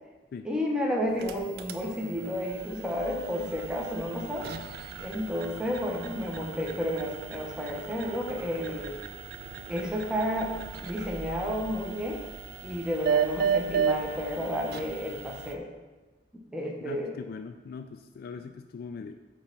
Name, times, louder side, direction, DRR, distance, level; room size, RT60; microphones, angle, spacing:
voice 1, 0.4-4.5 5.0-8.9 9.7-10.5 10.8-12.2 12.6-15.7 16.5-17.1, equal, 5° right, -1 dB, 0.8 m, -31 dB
sound 1, 1.1-15.5, right 7 dB, 60° right, 0.4 m, -35 dB
voice 2, 16.9-19.2, left 5 dB, 55° left, 7 dB, 0.3 m, -41 dB
8.5 x 3.0 x 5.3 m, 1.2 s
head